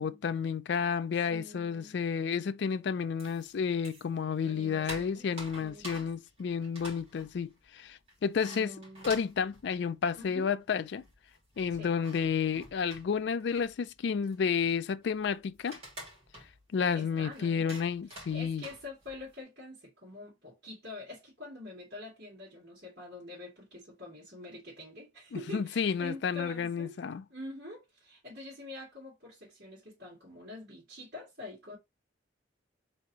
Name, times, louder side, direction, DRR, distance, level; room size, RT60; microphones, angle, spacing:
voice 1, 0.0-8.7 9.0-11.0 11.6-15.8 16.7-18.6 25.3-27.2, left 6 dB, 65° left, 0.3 m, -31 dB
voice 2, 1.3-2.0 4.4-5.3 5.6-6.1 8.4-9.4 10.1-10.5 11.7-11.9 16.9-17.8 18.1-27.0 27.3-31.8, left 2 dB, 55° right, 2.1 m, -46 dB
sound 1, 3.2-4.2 4.5-10.4 10.7-10.8 11.0-19.4, right 1 dB, 30° right, 2.4 m, -49 dB
4.2 x 3.7 x 2.8 m
head